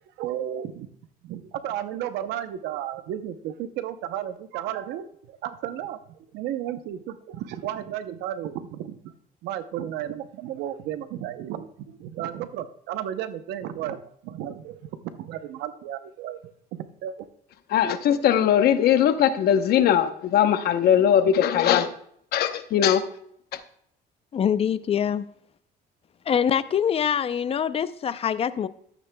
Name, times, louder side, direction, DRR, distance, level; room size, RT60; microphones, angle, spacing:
voice 1, 0.2-0.9 1.2-9.0 9.4-14.0 14.2-16.5 17.0-17.3 17.8-17.9, right 11 dB, 85° right, 0.7 m, -33 dB
voice 2, 17.7-21.9 22.3-23.0 23.5-23.6, left 9 dB, 70° left, 0.8 m, -20 dB
voice 3, 24.3-25.3 26.3-28.7, left 8 dB, 35° left, 0.5 m, -24 dB
13.0 x 9.1 x 2.2 m
cardioid pair, 110°, 17 cm